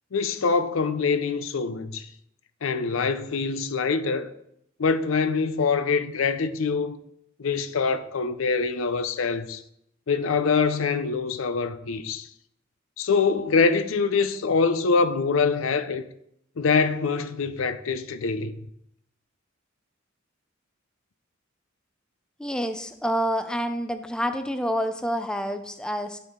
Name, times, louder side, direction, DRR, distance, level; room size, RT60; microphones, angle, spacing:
voice 1, 0.1-2.0 2.6-4.3 4.8-7.0 7.4-9.6 10.1-12.3 13.0-16.0 16.6-18.5, left 4 dB, 80° left, 0.5 m, -24 dB
voice 2, 22.4-26.2, equal, 5° left, 0.4 m, -28 dB
11.0 x 4.5 x 3.7 m
head